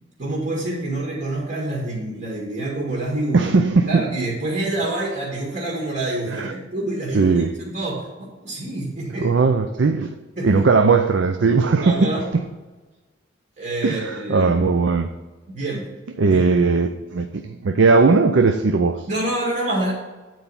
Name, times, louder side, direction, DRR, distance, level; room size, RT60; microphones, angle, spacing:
voice 1, 0.2-3.4 3.9-8.1 8.4-9.3 10.4-10.6 11.8-12.2 13.6-14.6 15.5-15.9 16.3-16.4 19.1-19.9, right 1 dB, 45° right, -4 dB, 2.0 m, -27 dB
voice 2, 3.3-4.0 6.4-6.5 7.1-7.5 9.2-10.1 10.4-12.1 13.8-15.1 16.2-19.1, right 4 dB, 75° right, 7 dB, 0.5 m, -18 dB
9.0 x 4.7 x 5.6 m, 1.2 s
head